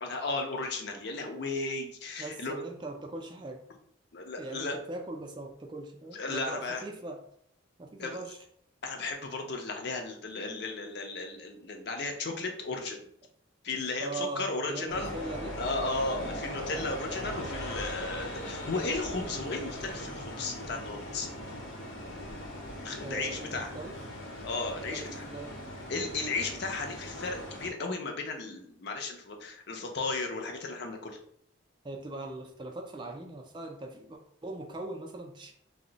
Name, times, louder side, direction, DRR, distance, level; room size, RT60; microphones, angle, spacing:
voice 1, 0.0-2.6 4.1-4.8 6.1-6.8 8.0-8.2 8.8-13.0 13.6-15.1 15.6-21.3 22.8-23.7 24.4-25.2 25.9-31.2, left 3 dB, 55° left, 3 dB, 0.5 m, -35 dB
voice 2, 2.2-3.6 4.4-7.2 7.8-8.4 14.0-15.6 23.0-23.9 24.7-25.5 31.8-35.5, right 2 dB, 25° right, 2 dB, 0.3 m, -40 dB
sound 1, 14.9-27.7, equal, 80° left, 0.8 m, -39 dB
2.6 x 2.0 x 3.8 m, 0.67 s
head